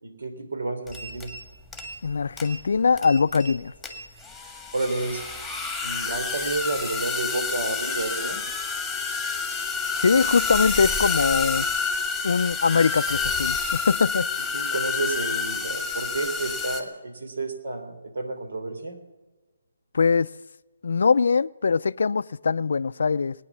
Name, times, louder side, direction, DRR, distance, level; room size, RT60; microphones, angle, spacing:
voice 1, 0.0-1.3 4.7-5.2 5.8-8.4 14.5-19.0, right 2 dB, 75° right, 7 dB, 3.3 m, -30 dB
sound 1, 0.9-1.4 1.7-2.1 2.4-2.6 3.0-3.5 3.8-16.8, left 5 dB, ahead, 1.7 m, -29 dB
voice 2, 2.0-3.7 10.0-11.7 12.2-14.3 19.9-20.3 20.8-23.3, left 5 dB, 70° left, 18 dB, 0.4 m, -22 dB
20.5 x 9.7 x 7.3 m, 1.2 s
hypercardioid pair, 155°, 0 cm